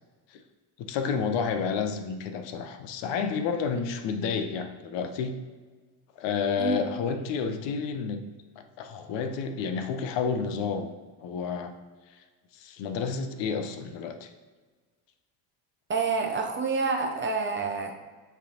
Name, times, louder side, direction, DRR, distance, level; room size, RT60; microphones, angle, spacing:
voice 1, 0.8-5.4 6.2-8.2 8.6-10.9 11.2-11.7 12.1-12.2 12.5-14.3, left 6 dB, 60° left, 8 dB, 0.7 m, -30 dB
voice 2, 6.6-6.9 15.9-18.0, right 4 dB, 25° right, 3 dB, 0.6 m, -28 dB
10.0 x 3.4 x 2.8 m, 1.4 s
supercardioid pair, 85°, 49 cm